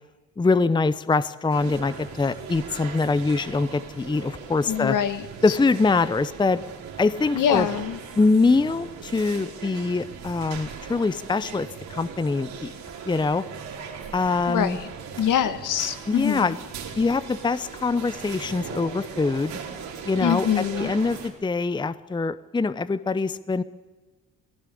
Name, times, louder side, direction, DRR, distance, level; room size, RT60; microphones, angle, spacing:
voice 1, 0.4-5.0 5.4-6.6 7.0-7.7 8.2-12.7 13.1-13.4 14.1-14.8 16.1-16.6 17.0-19.5 20.0-23.6, left 3 dB, 15° left, 15 dB, 0.7 m, -24 dB
sound 1, 1.5-21.3, right 6 dB, 85° right, 4.7 m, -39 dB
voice 2, 4.7-5.2 7.3-8.0 14.5-14.9 15.2-16.5 20.2-20.9, left 9 dB, 60° left, 11 dB, 1.6 m, -24 dB
19.5 x 17.0 x 8.5 m, 1.3 s
supercardioid pair, 70°, 35 cm